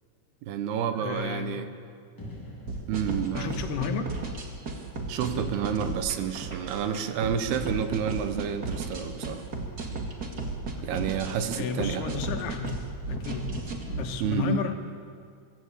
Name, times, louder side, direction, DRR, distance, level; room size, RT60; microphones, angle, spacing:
voice 1, 0.4-1.7 2.9-3.5 5.1-9.4 10.8-12.2 14.2-14.6, right 8 dB, 75° right, 9 dB, 3.0 m, -30 dB
voice 2, 0.9-1.6 3.3-4.1 11.6-12.8 13.1-13.5 13.9-14.7, left 6 dB, 75° left, 6 dB, 3.2 m, -32 dB
sound 1, 2.2-5.4, equal, 20° left, 0.6 m, -46 dB
sound 2, 2.7-14.1, right 3 dB, 35° right, 1.6 m, -34 dB
24.0 x 14.5 x 8.2 m, 2.3 s
omnidirectional pair, 4.8 m